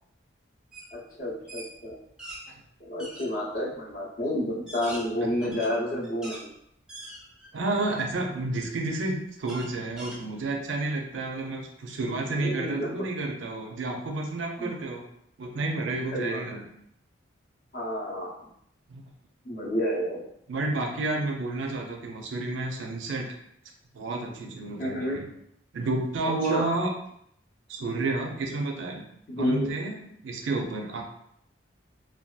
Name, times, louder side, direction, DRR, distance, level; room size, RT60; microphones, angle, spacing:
sound 1, 0.7-0.9 1.2-2.4 3.0-3.3 3.9-4.0 4.5-6.4 6.9-7.6 8.1-8.2 9.5-10.7, right 1 dB, 5° right, 0.4 m, -42 dB
voice 1, 0.9-2.0 2.8-6.5 12.4-13.1 14.6-14.7 15.9-16.4 17.7-18.3 19.4-20.3 24.8-25.2 26.2-26.7 29.3-29.7, equal, 45° left, -3 dB, 0.6 m, -30 dB
voice 2, 7.5-15.0 15.4-16.7 18.9-19.0 20.5-23.3 23.9-25.2 25.7-26.9 27.7-29.0 29.4-31.0, right 2 dB, 75° right, 1 dB, 0.4 m, -30 dB
2.6 x 2.2 x 2.2 m, 0.73 s
head